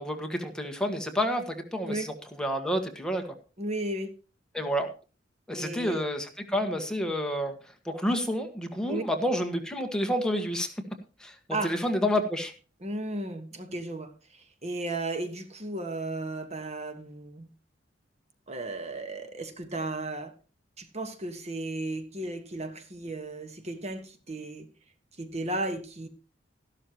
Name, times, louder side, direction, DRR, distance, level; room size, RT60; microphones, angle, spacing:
voice 1, 0.0-3.2 4.5-4.9 5.5-7.6 7.8-10.7 11.2-11.3 11.6-12.5, equal, 5° left, 4 dB, 1.5 m, -29 dB
voice 2, 3.6-4.1 5.5-6.0 8.9-9.0 11.5-11.7 12.8-14.1 14.6-17.5 18.5-20.3 20.8-24.7 25.2-26.1, right 2 dB, 35° right, 8 dB, 1.4 m, -34 dB
13.5 x 12.0 x 3.0 m, 0.35 s
head